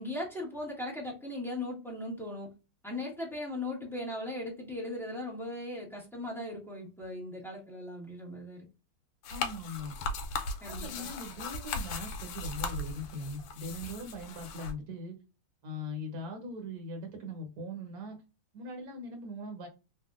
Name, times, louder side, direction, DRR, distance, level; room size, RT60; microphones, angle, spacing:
voice 1, 0.0-2.5 2.8-8.6 10.6-11.1, left 1 dB, ahead, -4 dB, 0.8 m, -38 dB
sound 1, 9.2-14.7, left 3 dB, 85° left, 1.5 m, -38 dB
voice 2, 9.3-10.0 10.7-15.2 15.6-18.2 18.5-19.7, left 1 dB, 50° right, 3 dB, 1.4 m, -40 dB
3.4 x 2.4 x 2.4 m, 0.29 s
omnidirectional pair, 2.3 m